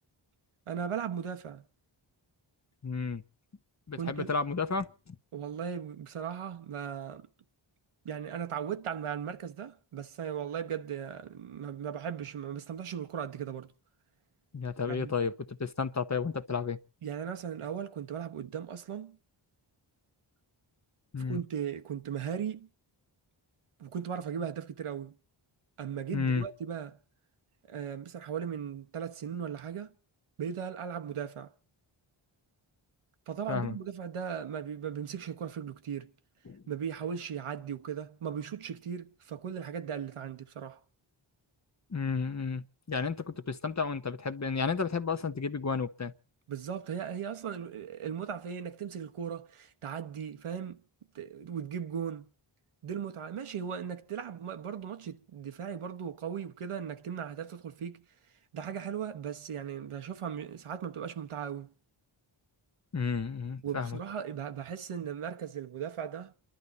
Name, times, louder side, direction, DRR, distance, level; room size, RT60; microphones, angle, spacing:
voice 1, 0.7-1.6 4.0-4.3 5.3-7.3 8.0-13.7 14.9-15.1 17.0-19.2 21.2-22.7 23.8-25.2 25.8-27.0 27.7-29.9 30.4-31.5 33.3-36.1 36.7-40.8 46.5-50.8 51.1-52.3 52.8-58.0 58.5-61.7 63.6-66.3, right 8 dB, 85° right, 1.1 m, -37 dB
voice 2, 2.8-3.2 3.9-5.2 14.5-16.8 21.1-21.4 26.1-26.4 33.5-33.8 36.5-36.6 41.9-46.1 62.9-64.0, left 5 dB, 35° left, 0.9 m, -32 dB
29.5 x 11.5 x 4.0 m
cardioid pair, 60°, 49 cm